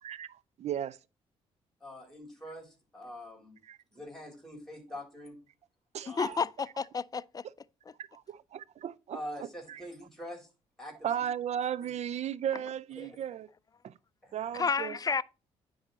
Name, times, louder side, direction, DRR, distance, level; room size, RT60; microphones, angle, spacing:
voice 1, 0.6-1.0 3.7-3.8 5.9-6.4 8.0-9.8 11.0-13.5 13.8-13.9 14.3-15.0, right 9 dB, 55° right, 0.5 m, -35 dB
voice 2, 1.8-3.5 3.9-5.4 6.0-6.4 9.1-10.5 10.8-11.1 11.8-11.9 13.0-13.1 14.2-14.6, equal, 5° left, 4.0 m, -44 dB
voice 3, 6.1-7.4 14.5-15.2, left 5 dB, 25° left, 0.4 m, -31 dB
9.7 x 3.9 x 4.1 m
hypercardioid pair, 50°, 14 cm